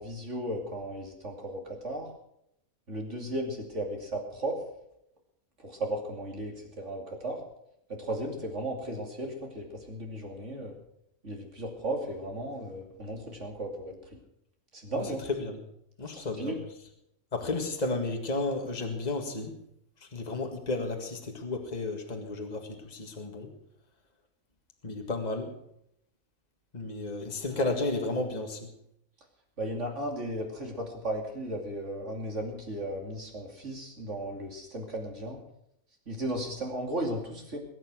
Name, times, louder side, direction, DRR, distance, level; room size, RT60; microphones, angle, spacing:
voice 1, 0.0-2.1 2.9-4.6 5.6-7.4 7.9-10.7 11.2-14.2 14.7-15.2 16.1-16.6 29.6-35.4 36.1-37.6, right 1 dB, 55° right, 1 dB, 3.0 m, -35 dB
voice 2, 16.0-16.6 17.3-19.5 20.1-23.5 24.8-25.5 26.7-28.7, left 2 dB, 30° left, 4 dB, 2.0 m, -32 dB
20.5 x 9.6 x 6.2 m, 0.76 s
omnidirectional pair, 1.5 m